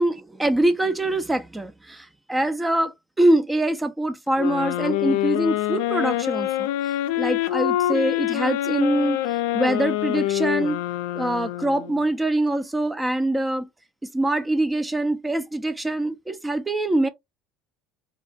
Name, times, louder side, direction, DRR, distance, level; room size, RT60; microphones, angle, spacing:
voice 1, 0.0-9.2 9.5-10.8 11.1-13.7 14.0-17.1, right 1 dB, 10° right, 0.5 m, -24 dB
sound 1, 4.4-12.1, left 14 dB, 80° left, 0.4 m, -25 dB
3.4 x 2.3 x 2.3 m
supercardioid pair, 90°, 0 cm